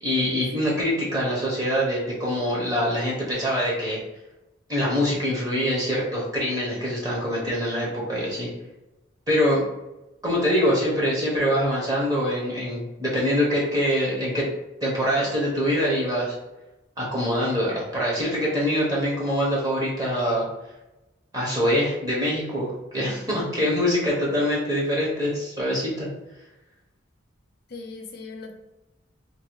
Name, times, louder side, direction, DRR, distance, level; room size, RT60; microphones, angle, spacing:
voice 1, 0.0-4.0 4.7-8.5 9.3-9.6 10.2-14.4 14.8-16.4 17.0-20.5 21.3-26.1, equal, 20° right, -5 dB, 0.7 m, -24 dB
voice 2, 27.7-28.5, left 3 dB, 50° left, 2 dB, 0.5 m, -40 dB
2.6 x 2.5 x 2.9 m, 0.97 s
head